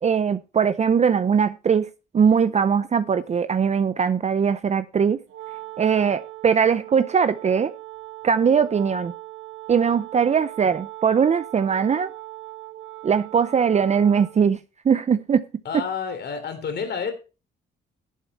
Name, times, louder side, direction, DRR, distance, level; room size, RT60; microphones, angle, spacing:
voice 1, 0.0-5.2 5.8-7.7 8.2-9.1 9.7-12.1 13.0-15.4, right 7 dB, 35° right, 0.6 m, -21 dB
Wind instrument woodwind instrument, 5.3-14.5, right 17 dB, 85° right, 1.2 m, -40 dB
voice 2, 15.6-17.1, left 6 dB, 55° left, 3.3 m, -29 dB
11.0 x 9.0 x 4.3 m
cardioid pair, 90°, 20 cm